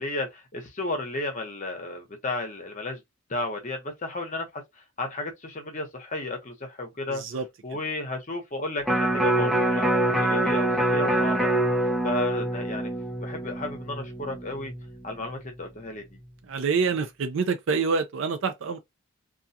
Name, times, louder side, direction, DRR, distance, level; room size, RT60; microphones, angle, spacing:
voice 1, 0.0-3.0 3.3-4.6 5.0-7.2 7.6-11.5 12.0-12.9 13.2-14.7 15.0-16.2, left 2 dB, 40° left, 0.8 m, -33 dB
voice 2, 7.1-7.5 16.5-18.8, right 5 dB, 65° right, 0.4 m, -26 dB
Electric guitar, 8.8-15.1 15.5-15.6, right 1 dB, ahead, 0.5 m, -25 dB
2.4 x 2.3 x 2.6 m
head